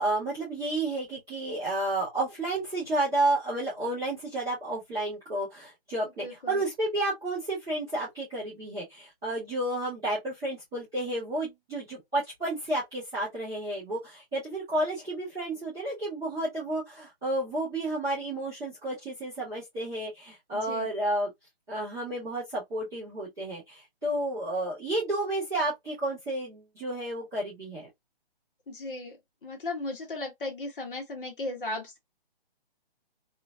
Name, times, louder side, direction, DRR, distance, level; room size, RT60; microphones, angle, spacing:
voice 1, 0.0-21.3 21.7-27.9, right 1 dB, 5° right, 0.5 m, -31 dB
voice 2, 6.0-6.6 20.5-20.9 28.7-32.0, left 2 dB, 60° left, 1.4 m, -36 dB
3.0 x 2.7 x 2.3 m
hypercardioid pair, 170°, 30 cm